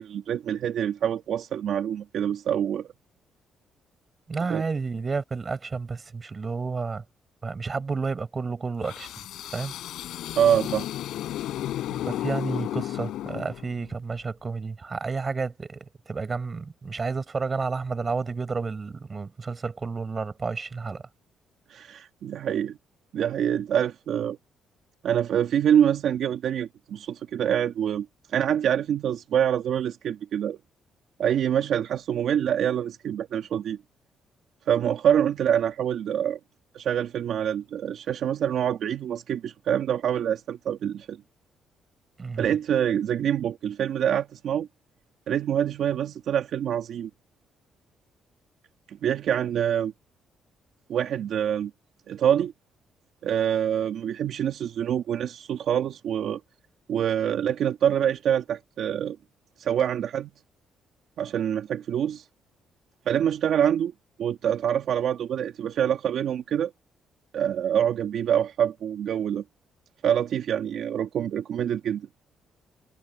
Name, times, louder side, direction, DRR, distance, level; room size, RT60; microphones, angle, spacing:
voice 1, 0.0-2.9 4.5-4.6 10.4-10.9 21.7-22.8 23.1-24.4 25.0-30.6 31.2-33.8 34.7-36.4 36.7-41.2 42.4-44.7 45.3-47.1 48.9-49.9 50.9-51.7 52.1-52.5 53.2-56.4 56.9-59.2 59.6-60.3 61.2-62.2 63.1-63.9 64.2-66.7 67.3-69.4 70.0-72.1, right 9 dB, 70° right, 2.1 m, -25 dB
voice 2, 4.3-7.0 7.4-9.1 9.5-9.7 12.0-21.0 42.2-42.5, right 4 dB, 35° right, 5.9 m, -31 dB
sound 1, 8.8-13.9, left 13 dB, 80° left, 5.3 m, -33 dB
cardioid pair, 90°, 0 cm